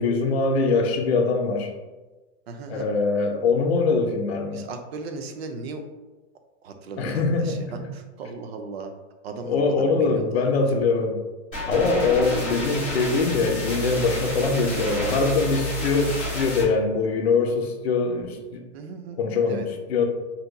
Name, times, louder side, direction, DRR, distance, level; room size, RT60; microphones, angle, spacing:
voice 1, 0.0-1.7 2.7-4.7 7.0-7.9 9.4-11.2 11.7-18.6 19.2-20.0, left 4 dB, 60° left, 3 dB, 0.6 m, -23 dB
voice 2, 2.5-2.8 4.5-5.8 6.6-7.6 7.9-8.9 9.2-10.5 12.5-12.8 18.7-19.2 19.5-19.6, right 4 dB, 55° right, 6 dB, 0.5 m, -37 dB
sound 1, 11.5-16.6, equal, 5° left, 0.3 m, -30 dB
2.7 x 2.2 x 3.8 m, 1.2 s
supercardioid pair, 180°, 36 cm